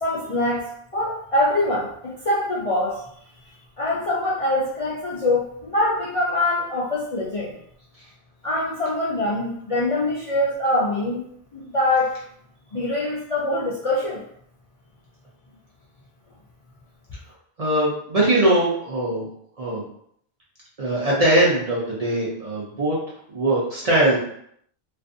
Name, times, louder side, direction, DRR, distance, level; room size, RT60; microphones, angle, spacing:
voice 1, 0.0-0.6 0.9-3.0 3.8-7.5 8.4-11.2 11.5-12.2 12.7-14.2, left 1 dB, 50° left, -7 dB, 0.4 m, -24 dB
voice 2, 17.6-19.3 19.6-19.9 20.8-23.0 23.3-24.2, right 1 dB, 45° right, -6 dB, 0.6 m, -21 dB
2.5 x 2.4 x 2.5 m, 0.67 s
omnidirectional pair, 1.1 m